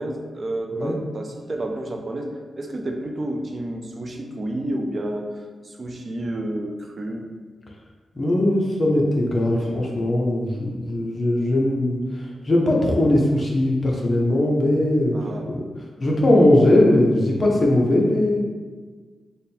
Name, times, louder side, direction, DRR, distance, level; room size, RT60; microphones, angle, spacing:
voice 1, 0.0-5.4 5.6-7.3 15.1-15.5, right 1 dB, 35° right, 3 dB, 0.4 m, -30 dB
voice 2, 8.1-15.2 15.4-15.6 16.0-18.4, left 1 dB, 35° left, -2 dB, 0.6 m, -19 dB
3.5 x 2.1 x 4.2 m, 1.4 s
wide cardioid pair, 115°, 0 cm